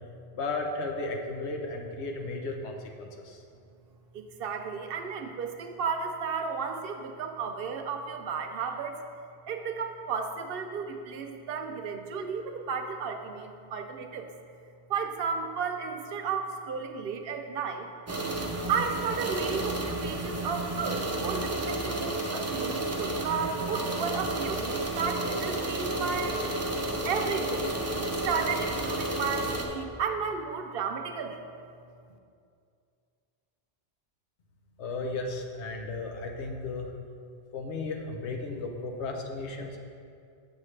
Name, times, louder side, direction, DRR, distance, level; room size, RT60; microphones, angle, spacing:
voice 1, 0.3-3.4 34.8-36.9 37.5-39.8, left 3 dB, 85° left, 2 dB, 1.0 m, -34 dB
voice 2, 4.1-9.0 9.5-14.3 14.9-17.9 18.7-26.4 27.0-27.7 28.2-31.4, right 5 dB, 65° right, 5 dB, 0.8 m, -33 dB
sound 1, 18.1-29.7, right 1 dB, 25° right, 0.3 m, -31 dB
7.3 x 7.0 x 3.2 m, 2.4 s
omnidirectional pair, 1.1 m